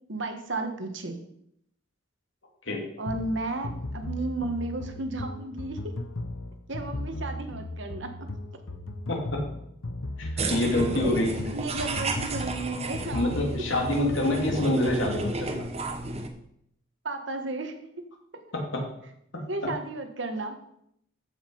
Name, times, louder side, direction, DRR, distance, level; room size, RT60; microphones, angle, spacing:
voice 1, 0.1-1.2 3.0-6.0 6.7-8.3 11.5-13.3 17.0-17.9 18.3-18.4 19.3-20.6, right 2 dB, 65° right, 6 dB, 1.5 m, -33 dB
sound 1, 3.1-15.5, left 1 dB, 85° left, 1.0 m, -36 dB
voice 2, 9.1-9.4 10.2-11.5 13.1-15.6 18.5-18.9 19.3-19.7, left 1 dB, 70° left, 1 dB, 2.8 m, -27 dB
sound 2, 10.4-16.3, right 2 dB, 30° right, 1.1 m, -32 dB
14.5 x 5.9 x 5.5 m, 0.74 s
head